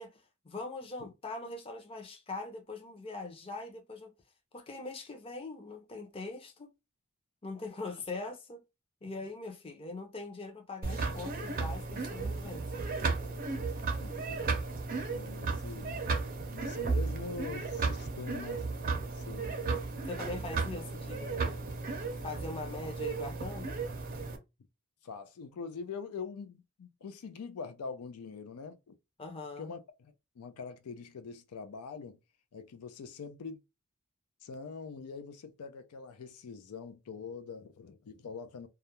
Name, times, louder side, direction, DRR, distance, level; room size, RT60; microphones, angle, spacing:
voice 1, 0.0-4.1 4.5-6.7 7.4-8.6 9.0-12.9 20.1-21.5 22.2-23.8 29.2-29.7, left 3 dB, 25° left, 0.5 m, -42 dB
sound 1, 10.8-24.4, right 4 dB, 40° right, 0.5 m, -34 dB
voice 2, 14.0-14.6 14.9-16.0 16.5-18.7 19.1-19.6 25.0-29.0 29.6-32.2 32.5-33.6 34.4-38.7, left 5 dB, 90° left, 0.4 m, -44 dB
2.3 x 2.1 x 2.9 m
head